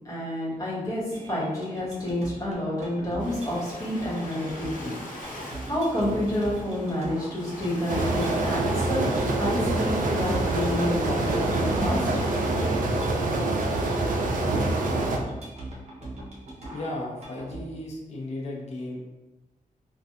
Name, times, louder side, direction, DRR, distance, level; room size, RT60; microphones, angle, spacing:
voice 1, 0.0-4.9 5.6-12.0, left 1 dB, 25° left, -8 dB, 1.2 m, -29 dB
sound 1, 1.1-17.6, right 2 dB, 50° right, 0.8 m, -41 dB
Ocean, 3.2-12.7, left 1 dB, 75° left, 1.0 m, -41 dB
sound 2, 7.9-15.2, right 2 dB, 70° right, 0.4 m, -25 dB
voice 2, 16.7-19.0, left 1 dB, 50° left, -2 dB, 0.5 m, -35 dB
3.3 x 2.3 x 2.6 m, 1.1 s
wide cardioid pair, 155°, 14 cm